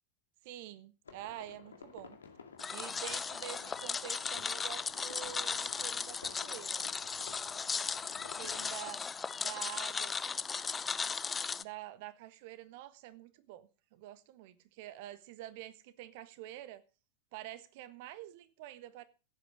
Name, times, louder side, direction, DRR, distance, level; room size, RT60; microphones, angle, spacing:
voice 1, 0.4-2.2 2.7-6.8 8.3-9.0 9.4-10.5 11.6-16.8 17.3-19.0, right 14 dB, 50° right, 1.4 m, -47 dB
sound 1, 1.1-8.9, left 5 dB, 70° left, 2.2 m, -54 dB
sound 2, 2.6-11.6, left 5 dB, 15° left, 0.6 m, -37 dB
15.5 x 8.7 x 6.3 m
figure-of-eight pair, 90°, 0 cm